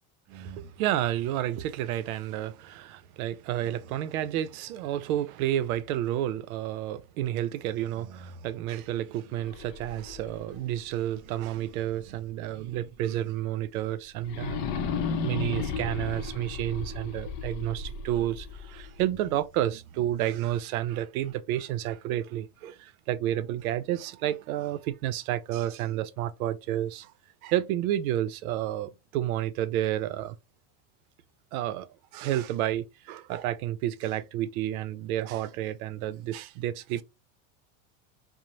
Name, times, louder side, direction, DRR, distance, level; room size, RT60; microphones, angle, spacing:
voice 1, 0.3-14.6 15.2-27.1 27.4-30.4 31.5-31.9 32.1-37.0, right 12 dB, 80° right, 0.5 m, -30 dB
sound 1, 9.3-12.3 12.7-12.8 14.2-19.3, left 5 dB, 65° left, 0.6 m, -35 dB
3.0 x 2.0 x 2.5 m
supercardioid pair, 145°, 42 cm